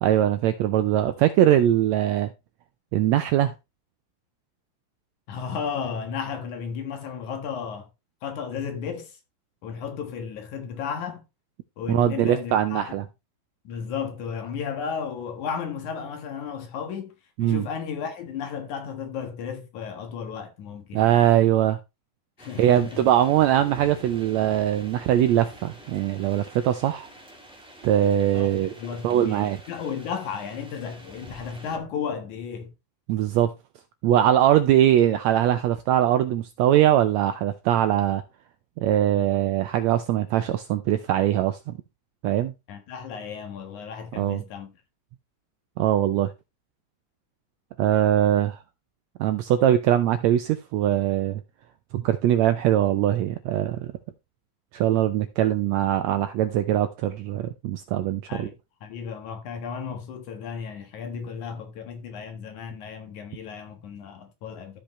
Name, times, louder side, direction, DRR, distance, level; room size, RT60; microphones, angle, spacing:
voice 1, 0.0-2.3 2.9-3.5 11.9-13.0 17.4-17.6 20.9-21.8 22.6-27.1 27.8-28.7 29.0-29.6 33.1-33.5 34.0-38.2 38.8-41.8 42.2-42.5 44.1-44.4 45.8-46.3 47.8-48.6 49.2-51.4 51.9-53.9 54.7-58.5, right 12 dB, 80° right, 1.6 m, -21 dB
voice 2, 5.3-7.9 8.2-9.2 9.6-11.2 11.8-13.0 13.6-17.1 17.4-21.2 22.4-23.1 28.3-28.5 28.8-32.7 42.7-44.7 58.3-58.5 58.8-64.8, left 6 dB, 70° left, 2.9 m, -34 dB
sound 1, 22.4-31.8, equal, 5° right, 0.6 m, -47 dB
13.5 x 5.1 x 3.2 m
omnidirectional pair, 3.7 m